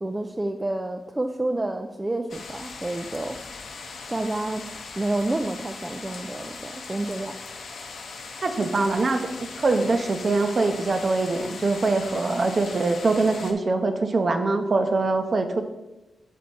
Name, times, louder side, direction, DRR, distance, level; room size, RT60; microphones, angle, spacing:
voice 1, 0.0-3.4 4.1-4.6 5.0-7.3, right 2 dB, 20° right, 4 dB, 0.4 m, -29 dB
sound 1, 2.3-13.5, left 4 dB, 80° left, 0.7 m, -39 dB
voice 2, 8.4-15.6, right 3 dB, 50° right, 6 dB, 0.8 m, -23 dB
7.3 x 4.2 x 4.2 m, 1.1 s
cardioid pair, 65°, 0 cm